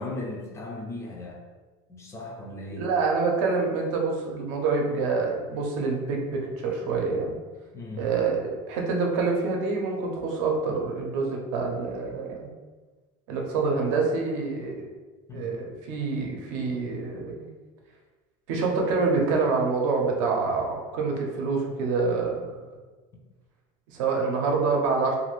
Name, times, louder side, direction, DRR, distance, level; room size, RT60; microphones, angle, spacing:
voice 1, 0.0-1.4 1.9-2.8 7.7-8.1 15.3-15.5, left 2 dB, 15° left, -1 dB, 0.4 m, -37 dB
voice 2, 2.7-7.4 8.0-12.5 13.3-14.9 15.3-17.5 18.5-22.7 23.9-25.2, right 4 dB, 75° right, 0 dB, 0.6 m, -26 dB
2.5 x 2.4 x 3.1 m, 1.3 s
cardioid pair, 155°, 16 cm